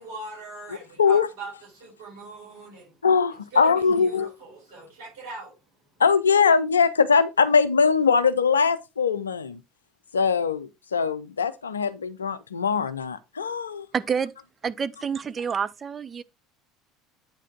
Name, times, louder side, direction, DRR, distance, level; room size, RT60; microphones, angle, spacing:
voice 1, 0.0-3.0 3.5-5.6, right 3 dB, 65° right, 4.2 m, -41 dB
voice 2, 3.0-4.3 6.0-9.6 10.1-13.9, left 5 dB, 80° left, 0.5 m, -21 dB
voice 3, 13.9-14.3 14.6-16.2, right 6 dB, 30° right, 0.5 m, -28 dB
8.8 x 5.0 x 3.7 m
figure-of-eight pair, 65°, 0 cm